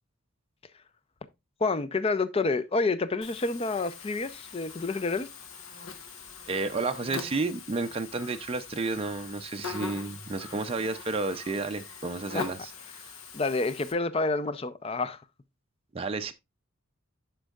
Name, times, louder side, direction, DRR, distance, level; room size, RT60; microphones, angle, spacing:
voice 1, 1.6-5.3 12.3-12.4 13.3-15.2, left 3 dB, 30° left, 0.5 m, -28 dB
Buzz, 3.2-13.9, left 5 dB, 80° left, 1.0 m, -42 dB
voice 2, 6.5-12.7 13.0-13.1 15.9-16.3, right 3 dB, 25° right, 0.4 m, -31 dB
11.5 x 4.5 x 2.3 m
head